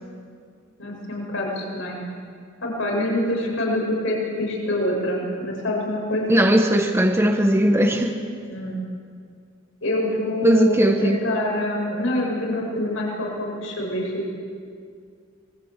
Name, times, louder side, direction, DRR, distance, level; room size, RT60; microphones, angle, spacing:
voice 1, 0.8-2.0 2.6-6.4 8.5-8.9 9.8-14.3, left 1 dB, 70° left, -1 dB, 7.2 m, -26 dB
voice 2, 6.3-8.2 10.4-11.2, equal, 15° right, 3 dB, 1.4 m, -18 dB
26.5 x 21.5 x 8.4 m, 2.2 s
head